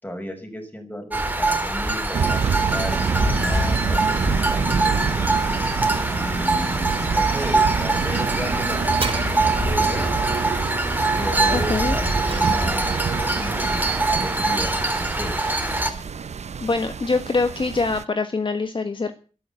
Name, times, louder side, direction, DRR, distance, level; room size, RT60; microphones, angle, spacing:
voice 1, 0.0-2.4 2.7-5.3 6.1-8.8 9.1-10.2 11.2-15.4, equal, 15° left, 5 dB, 5.8 m, -34 dB
sound 1, 1.1-15.9, right 2 dB, 15° right, 3.3 m, -23 dB
sound 2, 2.1-18.0, right 6 dB, 70° right, 0.8 m, -28 dB
sound 3, 8.9-10.0 11.7-13.0 13.8-13.9, right 4 dB, 50° right, 4.3 m, -34 dB
voice 2, 11.5-11.9 15.9-16.0 16.6-19.1, left 3 dB, 45° left, 8 dB, 1.5 m, -24 dB
14.0 x 12.5 x 8.4 m, 0.38 s
wide cardioid pair, 95°, 12 cm